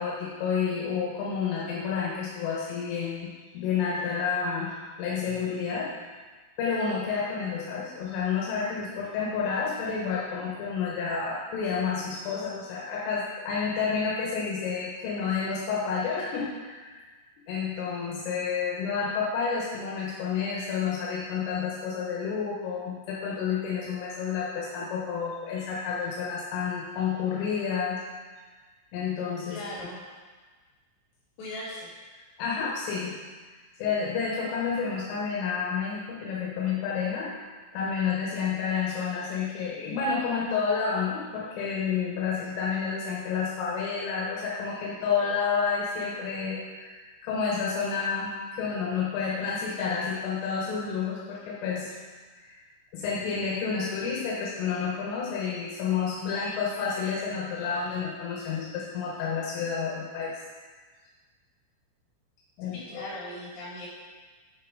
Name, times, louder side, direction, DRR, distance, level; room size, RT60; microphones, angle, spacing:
voice 1, 0.0-5.9 6.6-17.1 17.5-28.0 28.9-29.6 32.4-33.2 33.8-37.3 37.7-51.9 52.4-52.6 52.9-60.3 62.6-63.1, left 6 dB, 80° left, -4 dB, 3.6 m, -30 dB
voice 2, 29.5-30.0 31.4-31.9 62.7-63.9, left 1 dB, 50° left, -8 dB, 3.8 m, -38 dB
8.0 x 6.7 x 4.7 m, 1.4 s
omnidirectional pair, 5.9 m